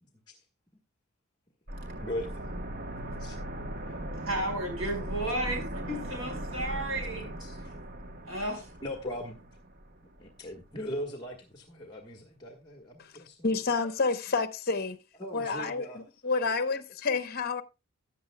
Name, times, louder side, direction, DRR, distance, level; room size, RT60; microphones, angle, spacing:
voice 1, 0.0-0.4 2.0-2.5 3.2-3.4 3.8-4.2 7.4-7.7 8.8-9.4 10.2-13.5 15.2-16.0, left 1 dB, 20° left, 1.4 m, -40 dB
sound 1, 1.7-10.4 10.7-10.8, right 1 dB, 40° right, 1.0 m, -39 dB
voice 2, 4.3-7.3 8.2-8.6, right 1 dB, 65° right, 5.0 m, -33 dB
voice 3, 13.4-15.0 15.3-17.6, left 4 dB, 45° left, 0.9 m, -29 dB
15.0 x 9.8 x 2.2 m
head